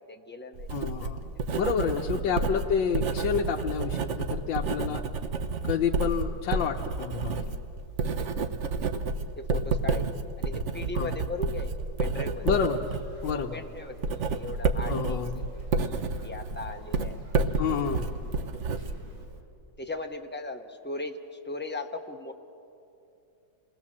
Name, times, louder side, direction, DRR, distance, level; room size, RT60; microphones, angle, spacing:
voice 1, 0.0-0.7 1.0-1.4 2.1-2.3 3.6-3.8 9.4-11.7 12.0-12.5 13.2-15.2 16.2-17.2 18.2-18.4 19.8-22.3, left 2 dB, 15° left, 4 dB, 0.3 m, -38 dB
Writing, 0.5-19.4, right 4 dB, 50° right, 1.0 m, -30 dB
voice 2, 0.7-5.0 5.6-7.6 10.9-11.1 12.4-12.8 13.2-13.6 14.9-15.5 17.6-18.1, left 7 dB, 80° left, 0 dB, 1.6 m, -29 dB
sound 1, 12.1-19.3, right 1 dB, 70° right, 3.7 m, -49 dB
28.0 x 20.0 x 7.3 m, 2.7 s
omnidirectional pair, 2.0 m